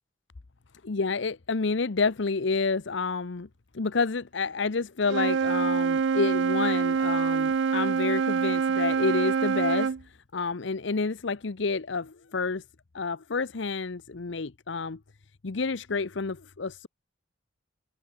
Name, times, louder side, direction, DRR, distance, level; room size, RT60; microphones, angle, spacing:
voice 1, 0.8-3.5 3.7-12.6 12.9-15.0 15.4-16.9, left 4 dB, 70° left, 0.8 m, -29 dB
Wind instrument woodwind instrument, 5.0-10.0, right 5 dB, 65° right, 0.4 m, -25 dB
open air
head